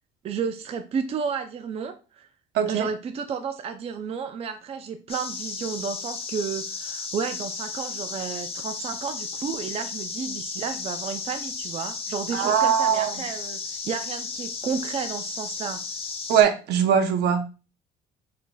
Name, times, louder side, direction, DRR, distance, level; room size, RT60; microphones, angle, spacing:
voice 1, 0.2-2.3 2.7-15.8, right 6 dB, 35° right, 8 dB, 0.4 m, -32 dB
voice 2, 2.5-2.9 12.3-13.1 16.3-17.5, right 8 dB, 75° right, 7 dB, 0.8 m, -21 dB
sound 1, 5.1-16.4, left 5 dB, 35° left, 0.9 m, -34 dB
5.6 x 2.5 x 2.3 m, 0.32 s
cardioid pair, 110°, 17 cm